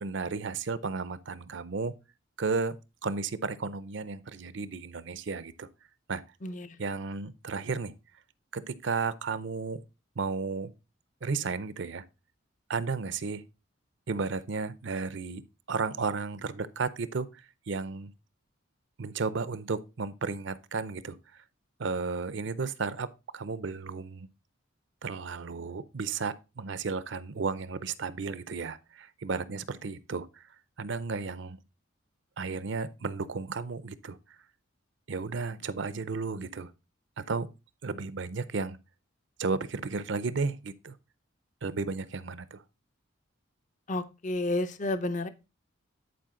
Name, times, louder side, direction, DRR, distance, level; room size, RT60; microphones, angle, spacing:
voice 1, 0.0-1.9 2.4-5.7 6.1-6.2 6.8-7.9 8.5-9.8 10.2-10.7 11.2-12.0 12.7-13.4 14.1-15.4 15.7-18.1 19.0-21.4 21.8-23.1 23.3-24.3 25.0-30.5 30.8-31.6 32.4-34.2 35.1-36.7 37.2-37.5 37.8-38.8 39.4-41.0 41.6-42.6, right 4 dB, 60° right, 0.6 m, -33 dB
voice 2, 43.9-45.3, left 2 dB, 35° left, 0.6 m, -31 dB
10.5 x 4.8 x 3.7 m
head